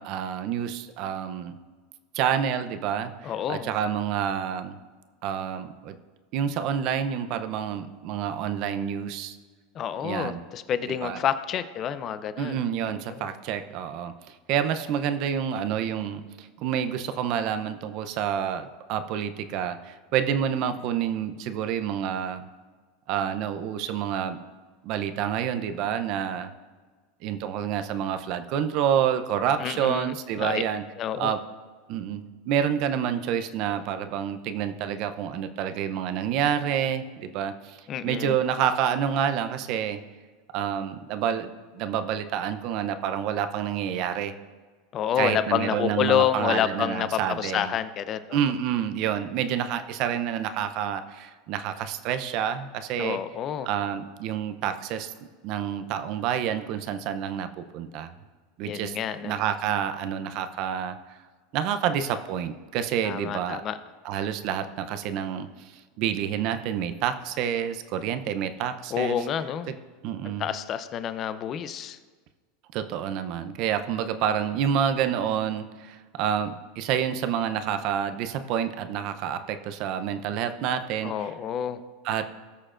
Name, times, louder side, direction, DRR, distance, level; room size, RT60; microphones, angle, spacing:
voice 1, 0.0-1.6 2.1-4.8 5.2-6.0 6.3-9.4 10.0-10.4 11.0-11.2 12.4-22.5 23.1-24.4 24.8-26.5 27.2-30.8 31.2-31.4 31.9-40.0 40.5-44.3 45.2-47.7 48.3-53.2 53.6-55.1 55.4-58.1 58.6-59.0 59.2-61.0 61.5-63.6 64.0-69.2 69.7-69.8 70.0-70.5 72.7-81.3 82.0-82.3, right 9 dB, 55° right, 9 dB, 0.6 m, -28 dB
voice 2, 3.2-3.7 9.7-13.3 29.6-30.6 31.0-31.3 37.9-38.4 44.9-48.4 53.0-53.7 58.6-59.4 63.0-63.8 68.9-69.7 70.4-72.0 81.0-81.8, left 9 dB, 35° left, 12 dB, 0.6 m, -28 dB
19.5 x 6.5 x 2.5 m, 1.5 s
supercardioid pair, 125°, 0 cm